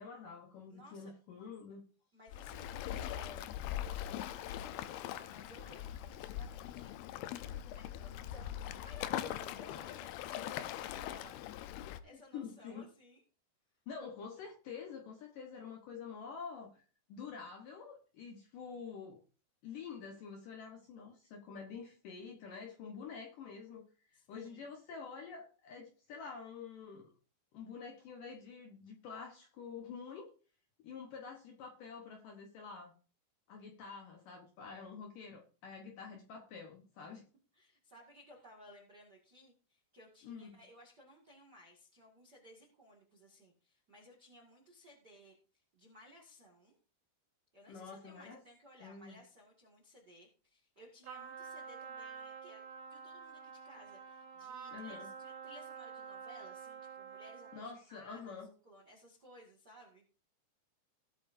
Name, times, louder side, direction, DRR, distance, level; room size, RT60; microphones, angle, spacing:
voice 1, 0.0-1.9 12.3-12.9 13.9-19.2 19.6-27.1 27.5-30.3 30.8-33.0 33.5-37.2 40.2-40.6 47.7-48.4 48.8-49.2 54.7-55.1 57.5-58.5, left 5 dB, 70° left, 2 dB, 2.2 m, -48 dB
voice 2, 0.7-1.1 2.1-3.5 3.8-13.2 24.1-24.6 37.5-46.7 47.5-52.6 52.9-60.0, left 1 dB, 45° right, -1 dB, 1.3 m, -59 dB
Waves surf, 2.3-12.0, left 12 dB, 90° left, 2.2 m, -41 dB
Trumpet, 51.0-57.7, right 6 dB, 75° right, 5.7 m, -48 dB
18.5 x 8.3 x 2.7 m, 0.38 s
omnidirectional pair, 5.3 m